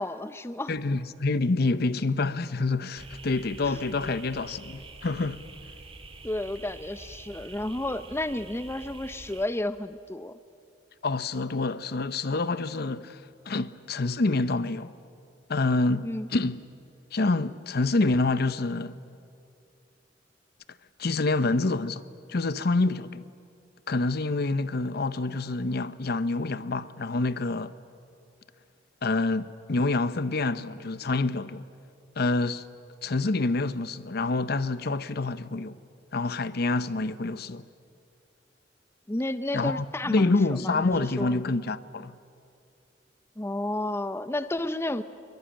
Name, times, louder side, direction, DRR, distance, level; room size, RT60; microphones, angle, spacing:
voice 1, 0.0-0.7 3.7-4.2 6.2-10.4 16.0-16.3 39.1-41.4 43.4-45.0, left 1 dB, 15° left, 0.6 m, -32 dB
voice 2, 0.7-5.4 11.0-13.2 13.5-14.9 15.5-16.6 17.1-19.0 21.0-22.0 22.3-23.3 23.9-27.7 29.0-31.6 32.2-32.6 33.0-35.8 36.1-37.6 39.5-42.1, left 3 dB, 60° left, 0.7 m, -27 dB
sound 1, 3.0-9.5, right 3 dB, 30° right, 1.8 m, -46 dB
23.0 x 23.0 x 8.8 m
head